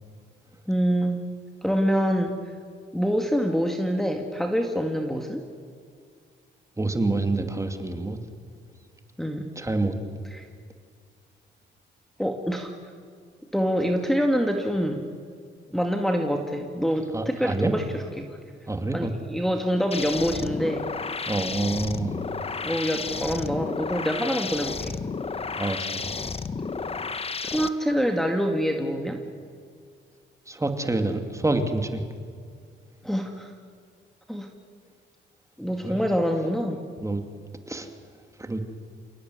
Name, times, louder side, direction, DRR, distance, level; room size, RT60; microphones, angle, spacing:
voice 1, 0.7-1.2 1.6-2.4 2.9-5.5 9.2-9.5 10.3-10.4 12.2-12.7 13.5-15.0 15.7-18.3 18.9-20.9 22.6-25.0 27.4-29.2 33.0-33.5 34.3-34.5 35.6-36.8, equal, ahead, 2 dB, 2.1 m, -26 dB
voice 2, 6.8-8.2 9.6-9.9 17.1-17.7 18.7-19.1 21.3-22.2 25.6-26.1 30.5-32.0 35.8-36.1 37.0-37.2 37.7-37.9 38.4-38.6, right 2 dB, 15° right, 6 dB, 2.5 m, -27 dB
sound 1, 19.9-27.7, left 4 dB, 30° left, 1.2 m, -32 dB
28.5 x 17.5 x 9.6 m, 2.2 s
cardioid pair, 90°, 20 cm